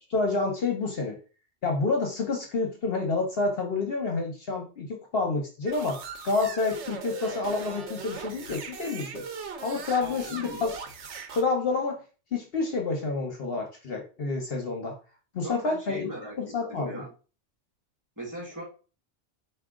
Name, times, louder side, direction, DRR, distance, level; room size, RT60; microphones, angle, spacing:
voice 1, 0.1-1.2 1.6-9.2 9.6-10.7 11.3-12.0 12.3-14.9 15.3-16.1 16.4-17.0, left 3 dB, 60° left, 1 dB, 1.1 m, -28 dB
sound 1, 5.7-11.4, right 5 dB, 80° right, 1.1 m, -39 dB
voice 2, 9.7-10.7 15.4-17.1 18.2-18.6, right 1 dB, 15° right, -4 dB, 2.0 m, -40 dB
4.8 x 2.7 x 3.6 m, 0.35 s
omnidirectional pair, 1.2 m